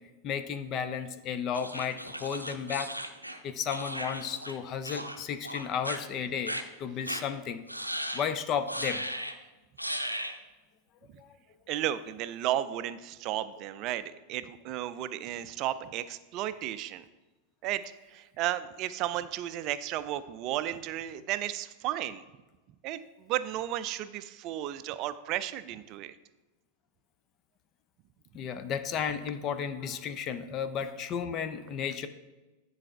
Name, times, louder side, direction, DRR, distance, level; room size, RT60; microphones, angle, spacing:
voice 1, 0.2-2.9 3.4-7.6 8.1-9.0 11.2-11.3 28.3-32.1, left 7 dB, 35° left, 10 dB, 0.5 m, -33 dB
sound 1, 1.5-4.6 4.8-5.2 5.4-6.0 6.5-6.6 7.1-7.2 7.7-8.3 8.7-9.4 9.8-10.4, equal, 90° right, 0.5 m, -36 dB
voice 2, 11.7-17.0 17.6-17.8 18.1-22.2 22.8-26.1, right 13 dB, 40° right, 14 dB, 0.4 m, -33 dB
9.8 x 4.0 x 4.5 m, 1.1 s
figure-of-eight pair, 90°, 0 cm